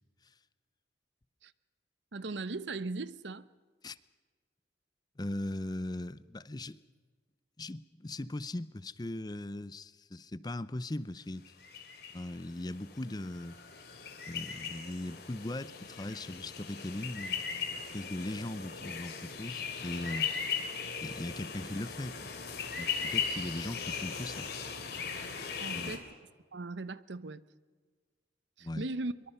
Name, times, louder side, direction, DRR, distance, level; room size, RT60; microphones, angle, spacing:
voice 1, 2.1-3.5 25.6-26.0 26.5-27.4 28.6-29.1, right 3 dB, 80° right, 0.8 m, -38 dB
voice 2, 5.2-6.8 7.6-11.4 12.1-13.6 14.3-20.3 21.0-22.3 22.7-24.5 25.7-25.9 28.6-28.9, left 1 dB, 25° left, 0.6 m, -39 dB
sound 1, 11.5-26.0, left 6 dB, 60° left, 3.0 m, -38 dB
24.0 x 23.5 x 5.6 m
head